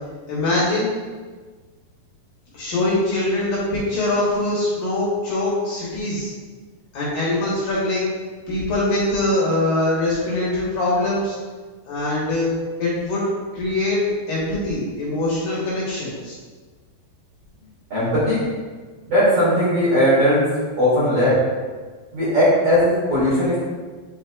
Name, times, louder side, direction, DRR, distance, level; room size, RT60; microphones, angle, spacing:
voice 1, 0.3-0.9 2.5-6.3 6.9-8.1 8.5-11.4 11.9-12.5 12.8-13.2 13.5-14.0 14.3-16.4, left 2 dB, 65° left, -7 dB, 2.6 m, -23 dB
voice 2, 17.9-18.4 19.1-20.5 20.8-21.4 22.1-23.6, equal, 45° right, -11 dB, 2.2 m, -18 dB
8.2 x 4.9 x 2.3 m, 1.4 s
omnidirectional pair, 5.1 m